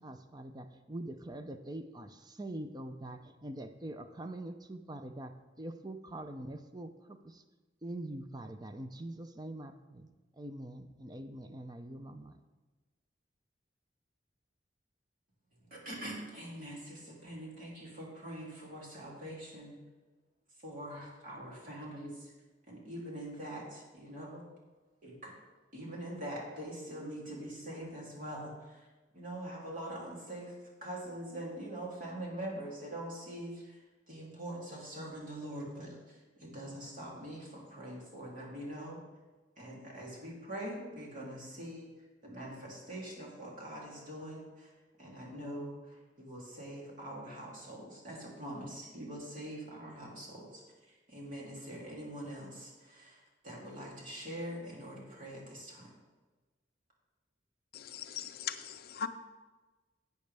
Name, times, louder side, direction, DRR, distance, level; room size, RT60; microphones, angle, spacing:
voice 1, 0.0-7.4 7.8-10.1 10.3-12.4, right 1 dB, 20° right, 8 dB, 0.6 m, -44 dB
voice 2, 15.7-19.7 20.6-22.3 22.7-24.4 25.0-25.3 25.7-28.8 29.1-30.5 30.8-33.8 34.1-39.0 39.6-41.9 42.2-44.7 45.0-50.6 51.1-53.2 53.4-55.9, right 1 dB, 45° right, -4 dB, 3.0 m, -43 dB
voice 3, 57.7-59.1, left 8 dB, 55° left, 9 dB, 0.5 m, -39 dB
12.0 x 8.2 x 3.4 m, 1.2 s
head